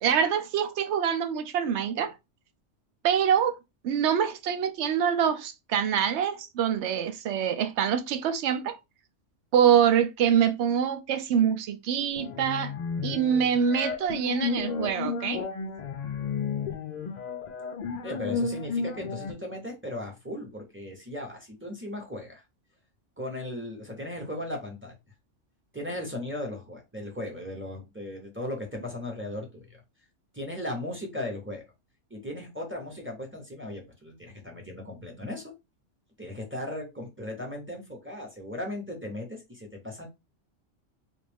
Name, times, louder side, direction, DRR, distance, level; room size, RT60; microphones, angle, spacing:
voice 1, 0.0-2.1 3.0-3.6 3.8-8.8 9.5-12.7 13.0-15.4, right 8 dB, 70° right, 0.8 m, -25 dB
sound 1, 12.1-19.3, left 5 dB, 60° left, 0.4 m, -32 dB
voice 2, 18.0-22.4 23.2-25.0 25.7-29.8 30.3-31.6 32.1-35.5 36.2-40.1, left 1 dB, 10° right, 0.8 m, -37 dB
3.3 x 2.5 x 3.4 m
omnidirectional pair, 1.3 m